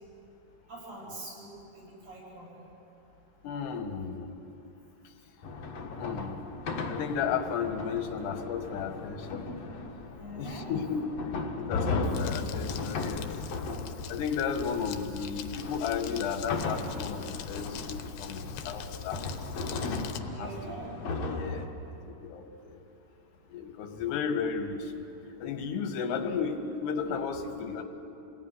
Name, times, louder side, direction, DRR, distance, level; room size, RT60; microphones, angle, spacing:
voice 1, 0.7-2.5 10.2-10.7 20.2-20.9 21.3-21.5, right 2 dB, 55° right, -5 dB, 9.8 m, -44 dB
voice 2, 3.4-4.4 6.0-6.4 6.9-9.5 10.3-11.0 11.6-13.3 14.1-19.3 20.4-20.5 21.3-21.7 22.1-22.8 23.5-24.9 25.4-27.8, left 6 dB, 90° left, 6 dB, 3.8 m, -33 dB
sound 1, 5.4-21.7, left 3 dB, 55° left, 2.0 m, -36 dB
Crumpling crinkling, 12.0-20.2, left 8 dB, 70° left, 2.8 m, -42 dB
28.5 x 19.5 x 9.8 m, 2.9 s
omnidirectional pair, 4.6 m